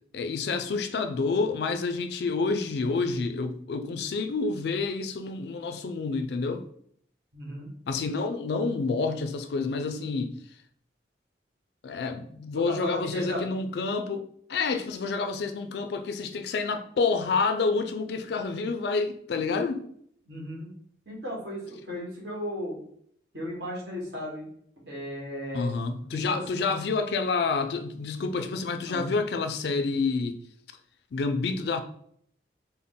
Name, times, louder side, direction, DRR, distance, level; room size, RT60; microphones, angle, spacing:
voice 1, 0.1-6.6 7.9-10.3 11.8-14.2 14.5-19.9 25.5-30.4 31.1-31.8, left 4 dB, 65° left, 0.3 m, -28 dB
voice 2, 7.3-7.7 12.7-13.4 20.2-20.7 21.0-22.8 23.3-24.4 24.8-25.7 26.3-26.7 28.9-29.1, equal, 65° right, 1.5 m, -35 dB
3.6 x 2.1 x 3.9 m
head